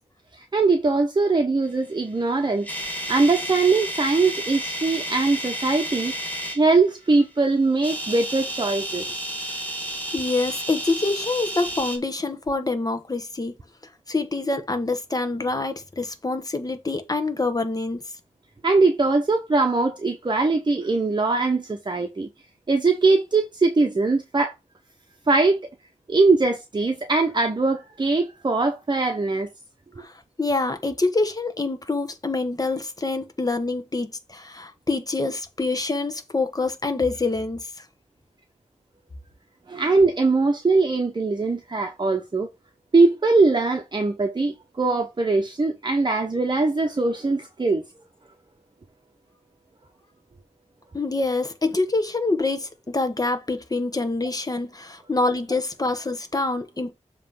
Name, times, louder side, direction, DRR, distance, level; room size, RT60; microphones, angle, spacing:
voice 1, 0.3-6.1 6.6-9.2 18.6-22.3 22.7-24.5 25.3-25.6 26.1-29.5 39.7-42.5 42.9-47.8, right 3 dB, 40° right, 0.9 m, -21 dB
sound 1, 2.2-6.6 7.7-12.0, right 1 dB, 15° left, 1.9 m, -31 dB
voice 2, 10.1-13.5 14.1-18.0 30.0-30.1 30.4-37.7 50.9-56.9, left 3 dB, 30° left, 1.2 m, -26 dB
7.5 x 3.2 x 5.5 m
wide cardioid pair, 100°, 12 cm